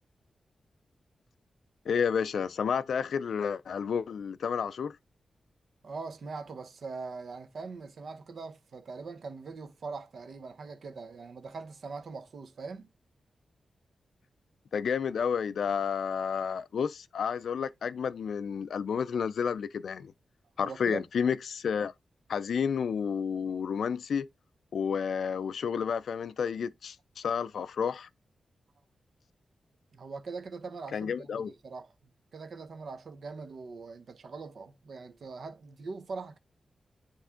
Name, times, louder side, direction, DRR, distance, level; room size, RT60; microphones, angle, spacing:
voice 1, 1.9-5.0 14.7-20.1 20.6-21.9 22.3-24.3 24.7-28.1 30.9-31.5, left 6 dB, 75° left, 0.4 m, -31 dB
voice 2, 5.8-12.9 20.6-21.0 29.9-31.9 32.3-36.4, right 4 dB, 60° right, 0.9 m, -42 dB
9.8 x 3.3 x 3.6 m
wide cardioid pair, 160°, 0 cm